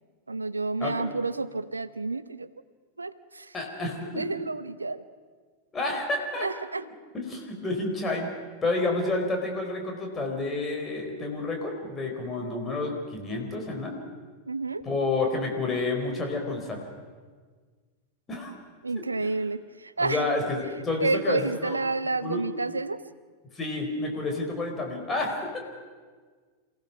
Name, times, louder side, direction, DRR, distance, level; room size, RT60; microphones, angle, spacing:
voice 1, 0.3-2.5 3.0-3.5 4.2-5.0 6.4-6.8 14.5-14.8 18.8-20.2 21.0-23.0, right 3 dB, 80° right, 16 dB, 0.6 m, -30 dB
voice 2, 3.5-4.2 5.7-6.5 7.1-8.3 8.6-14.0 14.8-16.8 18.3-18.5 20.0-21.8 22.2-22.5 23.5-25.6, left 2 dB, 20° left, 1 dB, 4.5 m, -29 dB
27.5 x 16.5 x 5.9 m, 1.5 s
figure-of-eight pair, 90°, 0 cm